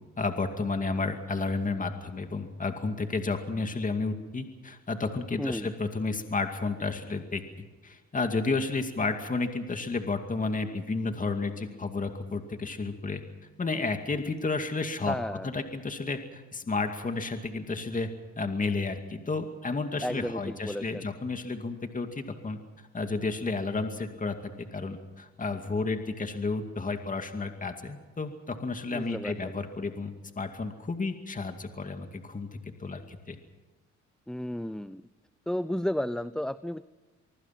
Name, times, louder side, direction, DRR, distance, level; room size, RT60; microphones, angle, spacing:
voice 1, 0.2-7.4 7.8-13.2 13.6-15.2 15.4-18.1 18.4-22.6 22.9-32.5 32.8-33.4, left 3 dB, 25° left, 6 dB, 2.4 m, -32 dB
voice 2, 5.4-5.7 15.1-15.5 20.0-21.1 28.9-29.6 34.3-35.0 35.5-36.8, left 1 dB, ahead, 15 dB, 0.6 m, -33 dB
24.5 x 23.5 x 6.0 m, 1.2 s
cardioid pair, 90°, 30 cm